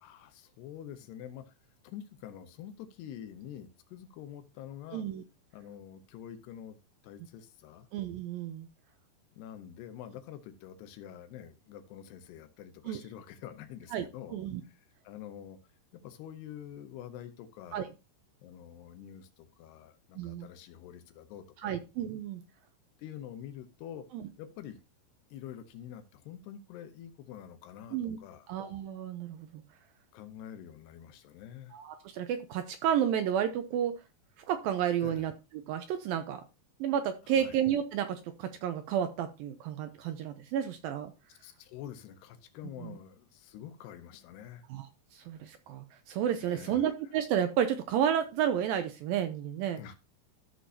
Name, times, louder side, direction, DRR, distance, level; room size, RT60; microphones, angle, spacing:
voice 1, 0.0-1.6 1.8-5.0 5.5-6.8 7.0-7.9 9.4-14.4 14.6-15.6 15.9-17.9 18.4-21.8 23.0-24.1 24.4-24.8 25.3-28.5 30.1-31.7 35.0-35.3 37.2-37.6 41.3-44.6 46.4-46.9 49.8-50.0, left 10 dB, 80° left, 3.0 m, -46 dB
voice 2, 4.9-5.2 7.9-8.7 12.9-13.0 13.9-14.1 14.3-14.6 17.7-17.9 20.2-20.5 21.6-22.4 24.1-24.3 27.9-28.2 28.5-29.6 31.7-34.0 34.4-35.3 35.6-36.4 36.8-41.1 44.7-49.8, right 9 dB, 80° right, 2.1 m, -31 dB
14.0 x 6.3 x 2.7 m
omnidirectional pair, 4.7 m